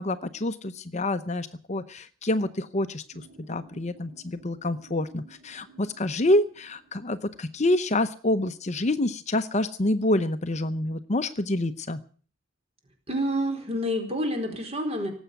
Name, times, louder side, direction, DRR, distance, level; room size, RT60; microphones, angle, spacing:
voice 1, 0.0-12.0, left 1 dB, 35° left, 11 dB, 0.8 m, -27 dB
sound 1, 3.1-8.1, right 3 dB, 55° right, 5.6 m, -56 dB
voice 2, 13.1-15.1, equal, 30° right, 4 dB, 4.4 m, -28 dB
18.5 x 8.2 x 9.4 m, 0.44 s
head